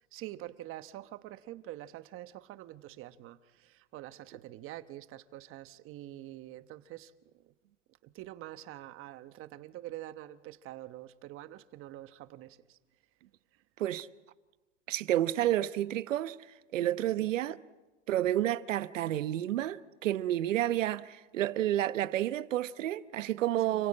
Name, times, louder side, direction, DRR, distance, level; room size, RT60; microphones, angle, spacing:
voice 1, 0.1-7.5 8.0-12.8 13.5-13.6 17.2-17.3 23.6-23.8, right 14 dB, 35° right, 1.1 m, -46 dB
voice 2, 14.9-16.4 16.7-17.6 18.1-23.9, right 13 dB, 85° right, 1.0 m, -30 dB
30.0 x 16.5 x 8.7 m
supercardioid pair, 130°, 37 cm